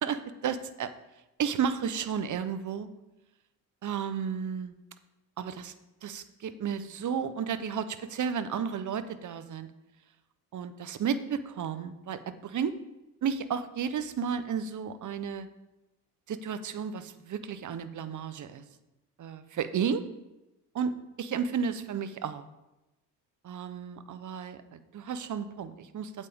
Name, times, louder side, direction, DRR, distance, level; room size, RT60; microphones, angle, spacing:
voice 1, 0.0-0.9 1.4-2.9 3.8-4.7 5.4-5.7 6.0-9.7 10.5-12.8 13.2-15.5 16.3-18.6 19.2-20.0 20.7-20.9 21.2-22.4 23.4-26.3, right 7 dB, 45° right, 12 dB, 0.8 m, -33 dB
8.4 x 8.4 x 3.6 m, 0.98 s
supercardioid pair, 75°, 42 cm